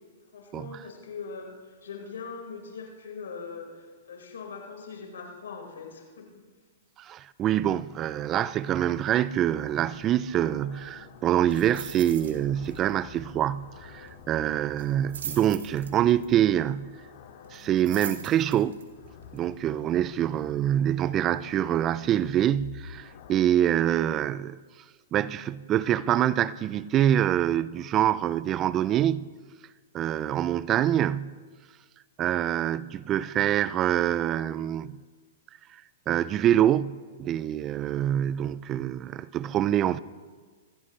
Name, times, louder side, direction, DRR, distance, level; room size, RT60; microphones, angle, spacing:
voice 1, 0.3-6.4, left 5 dB, 85° left, 4.8 m, -41 dB
voice 2, 7.0-17.0 17.5-18.8 19.3-24.6 25.1-29.3 29.9-31.4 32.2-35.0 36.1-40.0, right 11 dB, 30° right, 0.4 m, -25 dB
sound 1, 9.5-23.4, left 6 dB, 60° left, 2.2 m, -49 dB
sound 2, 11.5-12.4 12.6-12.9 13.2-13.3 14.8-16.3 17.5-18.8 19.4-19.5, right 7 dB, 80° right, 3.0 m, -39 dB
23.5 x 16.0 x 3.2 m
hypercardioid pair, 125°, 0 cm